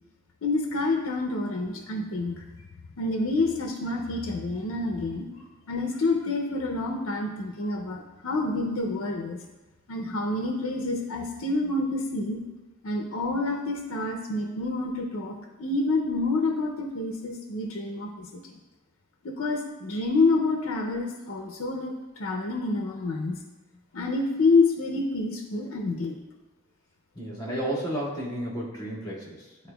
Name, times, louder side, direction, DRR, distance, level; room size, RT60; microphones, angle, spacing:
voice 1, 0.4-2.5 3.0-5.3 5.7-9.4 9.9-12.4 12.8-18.5 19.2-23.4 23.9-26.2, left 3 dB, 70° left, 2 dB, 0.6 m, -28 dB
voice 2, 27.1-29.7, right 1 dB, 20° left, -8 dB, 2.0 m, -32 dB
9.6 x 4.3 x 2.3 m, 1.1 s
head